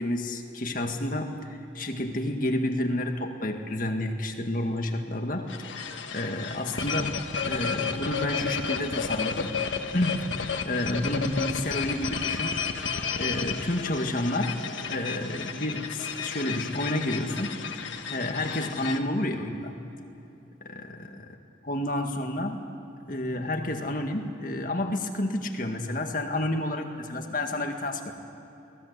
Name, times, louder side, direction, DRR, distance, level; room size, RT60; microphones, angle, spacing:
voice 1, 0.0-7.1 7.4-9.5 9.8-10.3 10.6-12.6 13.2-14.6 14.9-17.5 18.1-19.8 20.7-21.2 21.6-22.6 23.1-28.1, left 1 dB, 45° left, 4 dB, 1.9 m, -30 dB
sound 1, 5.5-19.0, left 5 dB, 85° left, 1.4 m, -32 dB
28.0 x 19.0 x 8.2 m, 2.9 s
head